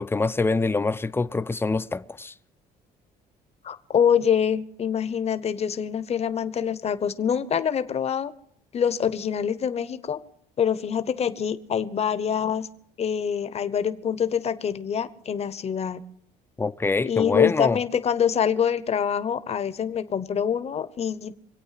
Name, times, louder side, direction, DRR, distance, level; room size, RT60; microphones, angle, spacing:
voice 1, 0.0-2.3 16.6-17.8, left 3 dB, 15° left, 0.6 m, -25 dB
voice 2, 3.6-8.3 8.7-10.2 10.6-12.7 13.0-16.0 17.0-21.3, left 8 dB, 40° left, 1.0 m, -25 dB
25.5 x 8.7 x 5.8 m
cardioid pair, 110°, 17 cm